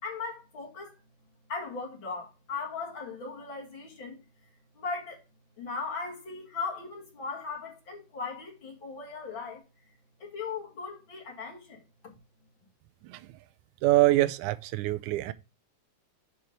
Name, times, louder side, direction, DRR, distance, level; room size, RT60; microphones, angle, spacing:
voice 1, 0.0-0.9 1.5-4.2 4.8-5.2 5.6-9.6 10.2-12.2, left 4 dB, 45° left, 2.2 m, -38 dB
voice 2, 13.8-15.3, right 17 dB, 80° right, 2.0 m, -24 dB
8.1 x 4.6 x 5.0 m
omnidirectional pair, 3.7 m